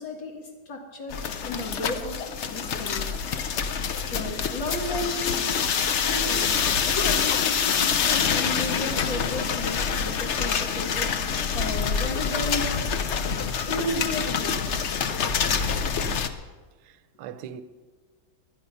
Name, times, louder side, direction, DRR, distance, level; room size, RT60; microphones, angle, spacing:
voice 1, 0.0-2.2 2.5-3.2 4.1-5.3 6.0-6.5 6.8-11.1 11.5-13.0 13.6-14.9, left 1 dB, 65° left, 2.4 m, -33 dB
sound 1, 1.1-16.3, left 6 dB, 85° left, 0.6 m, -26 dB
voice 2, 16.8-17.6, right 9 dB, 70° right, 1.4 m, -40 dB
18.5 x 12.0 x 5.4 m
omnidirectional pair, 2.3 m